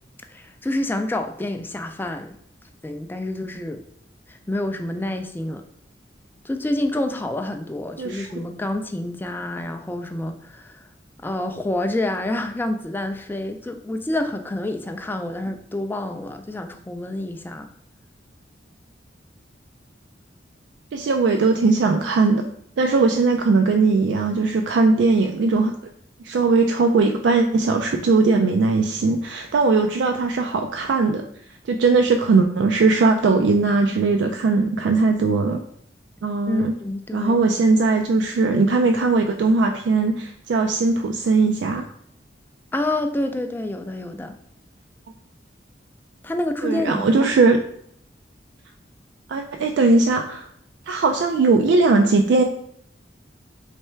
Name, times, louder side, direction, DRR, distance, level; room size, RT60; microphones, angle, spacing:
voice 1, 0.3-2.4 2.8-3.8 4.3-5.6 6.4-10.9 11.2-17.7 36.5-37.4 42.7-44.4 46.2-47.4, left 1 dB, 10° left, 6 dB, 0.3 m, -28 dB
voice 2, 20.9-22.4 22.8-25.8 26.2-31.3 31.7-35.6 36.2-36.7 37.1-41.9 46.6-47.6 49.3-50.5 50.9-52.4, right 3 dB, 70° right, 5 dB, 0.3 m, -19 dB
3.3 x 3.2 x 4.4 m, 0.68 s
head